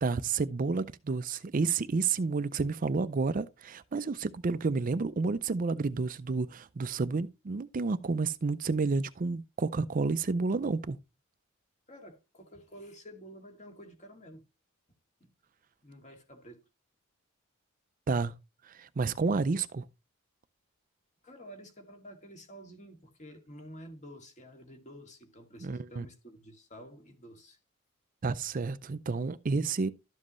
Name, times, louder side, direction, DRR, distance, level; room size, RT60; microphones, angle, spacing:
voice 1, 0.0-11.0 18.1-18.3 18.6-19.9 25.6-26.1 28.2-29.9, right 4 dB, 40° right, 0.4 m, -30 dB
voice 2, 11.9-14.4 15.2-15.3 15.8-16.6 21.2-27.6, equal, 35° left, 2.3 m, -50 dB
12.5 x 7.5 x 3.1 m
head